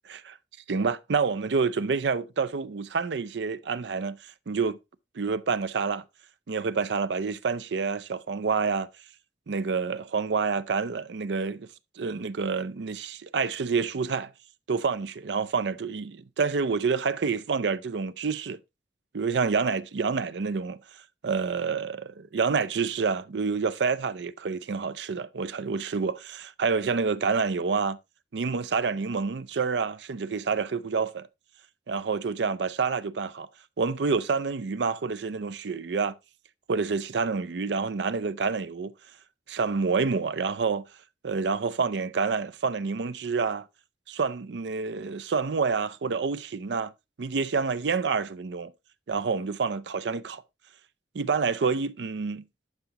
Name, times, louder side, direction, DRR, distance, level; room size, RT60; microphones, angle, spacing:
voice 1, 0.7-4.2 4.5-4.8 5.1-6.0 6.5-8.9 9.5-11.7 12.0-14.3 14.7-18.6 19.1-20.8 21.2-28.0 28.3-31.3 31.9-33.5 33.8-36.1 36.7-38.9 39.5-40.8 41.2-43.7 44.1-46.9 47.2-48.7 49.1-50.4 51.1-52.4, right 5 dB, 75° right, 0.5 m, -28 dB
11.5 x 5.8 x 2.9 m
head